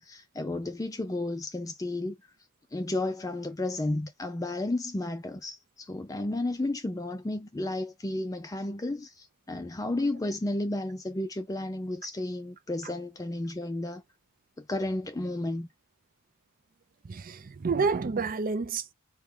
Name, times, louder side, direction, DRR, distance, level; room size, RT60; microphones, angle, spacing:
voice 1, 0.0-2.2 2.7-14.0 14.6-15.7, left 2 dB, 15° left, 0.4 m, -32 dB
voice 2, 17.0-18.9, right 4 dB, 40° right, 0.5 m, -29 dB
4.7 x 3.0 x 3.6 m
head